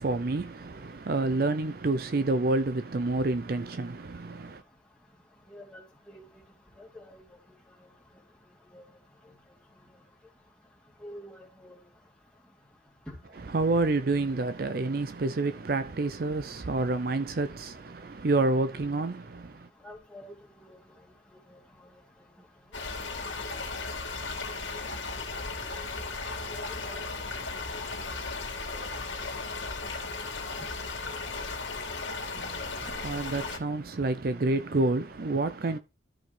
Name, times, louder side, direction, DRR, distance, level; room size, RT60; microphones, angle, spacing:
voice 1, 0.0-4.6 13.4-19.7 32.3-35.8, right 2 dB, 50° right, 0.5 m, -29 dB
voice 2, 5.5-5.8 6.1-6.2 6.8-7.2 8.7-8.8 11.0-11.8 13.1-13.2 19.8-20.3 20.7-20.8 21.5-21.6 23.5-23.8 24.2-24.3 26.5-27.1 27.7-27.9 28.7-28.9 29.9-30.0, equal, 5° left, 2.6 m, -47 dB
sound 1, 22.7-33.6, left 3 dB, 90° left, 2.3 m, -36 dB
13.0 x 5.0 x 3.3 m
head